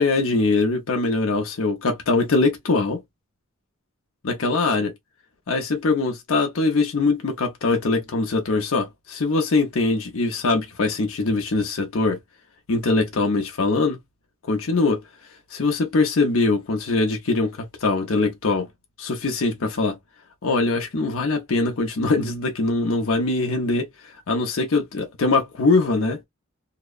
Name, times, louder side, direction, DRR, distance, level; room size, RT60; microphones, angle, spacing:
voice 1, 0.0-3.0 4.2-4.9 5.5-12.2 12.7-14.0 14.4-15.0 15.5-18.7 19.0-20.0 20.4-23.9 24.3-26.2, left 3 dB, 75° left, 0.7 m, -22 dB
2.8 x 2.1 x 2.3 m
head